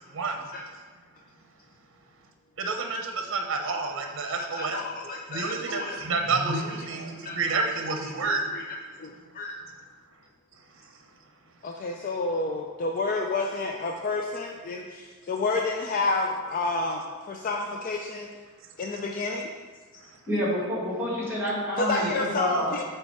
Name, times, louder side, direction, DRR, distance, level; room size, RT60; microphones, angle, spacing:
voice 1, 0.1-0.5 2.6-4.8 5.3-8.5, right 3 dB, 60° right, 3 dB, 0.7 m, -29 dB
voice 2, 4.4-6.0 6.5-6.7 7.2-7.4 8.5-9.6 11.6-18.3 18.8-19.5 21.8-22.8, left 3 dB, 40° left, 2 dB, 0.4 m, -30 dB
voice 3, 20.3-22.7, equal, 10° right, -5 dB, 1.9 m, -28 dB
8.3 x 3.3 x 4.7 m, 1.5 s
head